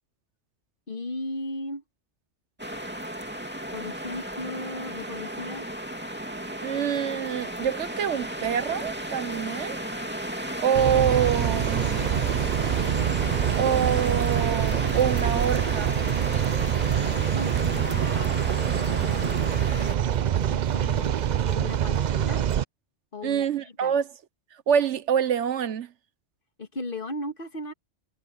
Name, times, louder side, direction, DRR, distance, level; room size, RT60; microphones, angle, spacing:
voice 1, 0.9-1.8 3.7-5.7 17.1-21.1 21.4-22.4 23.1-23.9 26.6-27.7, left 2 dB, 50° left, 1.9 m, -37 dB
sound 1, 2.6-20.0, equal, 10° right, 2.6 m, -34 dB
voice 2, 6.6-9.8 10.6-11.8 13.6-16.0 23.2-24.1 24.7-25.9, right 8 dB, 80° right, 1.2 m, -26 dB
sound 2, 10.7-22.6, right 10 dB, 55° right, 0.5 m, -25 dB
omnidirectional pair, 1.2 m